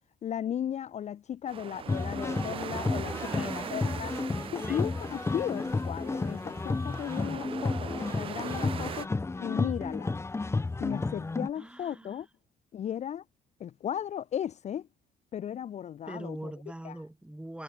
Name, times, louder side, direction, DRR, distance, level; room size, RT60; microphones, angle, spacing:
voice 1, 0.2-4.1 4.5-9.1 9.4-10.1 10.8-12.3 12.7-13.2 13.6-14.9 15.3-16.5 16.8-17.0, left 9 dB, 40° left, 0.6 m, -35 dB
sound 1, 1.5-9.1, right 8 dB, 35° right, 0.4 m, -41 dB
sound 2, 1.9-11.5, left 3 dB, 15° left, 1.2 m, -32 dB
voice 2, 3.2-3.8 4.7-4.9 11.6-12.2 16.1-17.6, right 1 dB, 5° right, 3.2 m, -42 dB
cardioid pair, 110°, 17 cm